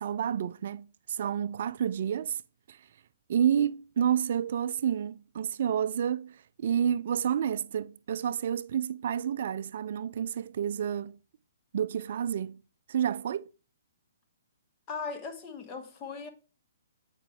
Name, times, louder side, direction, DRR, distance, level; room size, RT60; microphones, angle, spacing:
voice 1, 0.0-2.4 2.7-2.8 3.3-11.2 11.7-12.6 12.9-13.5, right 9 dB, 55° right, 0.3 m, -29 dB
voice 2, 14.9-16.3, left 5 dB, 25° left, 1.2 m, -38 dB
8.7 x 4.9 x 3.5 m
hypercardioid pair, 130°, 0 cm